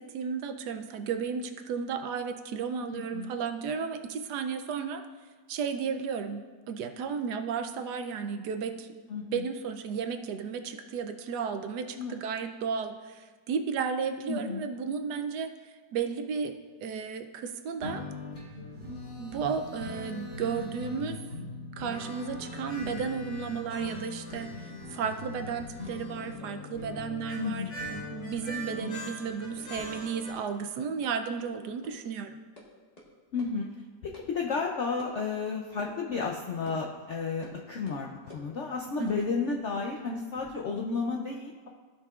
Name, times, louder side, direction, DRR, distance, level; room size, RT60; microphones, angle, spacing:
voice 1, 0.0-5.0 5.5-8.9 9.2-18.0 18.8-21.2 21.8-24.5 24.9-32.3 39.0-39.3, right 6 dB, 75° right, 7 dB, 1.1 m, -34 dB
voice 2, 2.9-3.3 9.1-9.4 12.0-12.2 14.3-14.7 27.4-27.8 33.3-33.7 34.0-41.7, left 4 dB, 70° left, 0 dB, 0.6 m, -32 dB
sound 1, 17.8-30.3, left 2 dB, 50° left, 2.2 m, -41 dB
sound 2, 25.6-28.2 28.5-29.2 29.6-29.7 29.9-30.0 30.3-30.4 31.0-31.1 31.4-31.5 31.8-31.9 32.3-32.6 33.0-33.1 33.4-33.5 34.1-34.2 34.6-34.7 35.0-35.1 35.8-35.9 36.2-36.4 36.7-36.8 37.4-37.6 37.9-38.5 39.0-40.5, left 1 dB, 25° left, 1.4 m, -51 dB
15.5 x 5.5 x 2.4 m, 1.4 s
omnidirectional pair, 1.9 m